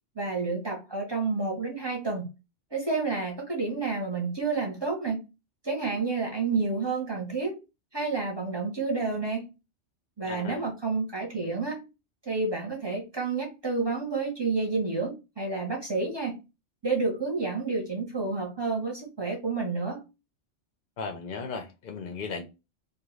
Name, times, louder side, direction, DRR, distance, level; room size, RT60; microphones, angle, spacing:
voice 1, 0.1-2.3 2.7-5.2 5.6-7.6 7.9-9.5 10.2-11.8 12.2-16.4 16.8-20.1, right 4 dB, 25° right, 0.8 m, -30 dB
voice 2, 10.2-10.6 21.0-22.4, left 4 dB, 55° left, 0.6 m, -36 dB
2.5 x 2.3 x 3.0 m
omnidirectional pair, 1.2 m